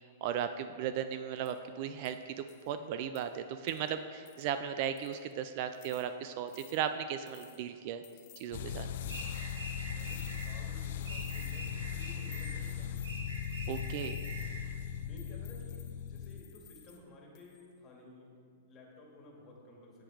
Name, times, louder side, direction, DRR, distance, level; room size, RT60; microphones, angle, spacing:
voice 1, 0.2-8.0 8.4-8.9 13.7-14.2, right 9 dB, 45° right, 10 dB, 0.4 m, -36 dB
sound 1, 1.4-1.6 2.0-2.2 2.5-2.7 3.1-3.2 3.7-3.9 4.3-4.5 5.0-5.3 5.7-6.0 6.5-6.8 7.3-7.6 8.0-8.5 9.0-9.6 10.0-10.6 11.0-11.8 12.3-14.5 15.2-17.0 17.3-17.7, left 11 dB, 40° left, 1.2 m, -57 dB
sound 2, 8.5-16.4, left 9 dB, 65° left, 0.5 m, -39 dB
sound 3, 9.1-10.6 11.0-12.6 13.0-14.6, right 1 dB, 85° right, 2.5 m, -44 dB
voice 2, 9.8-13.1 14.6-20.0, left 2 dB, 25° left, -1 dB, 2.1 m, -55 dB
8.9 x 8.0 x 5.0 m, 2.2 s
hypercardioid pair, 145°, 0 cm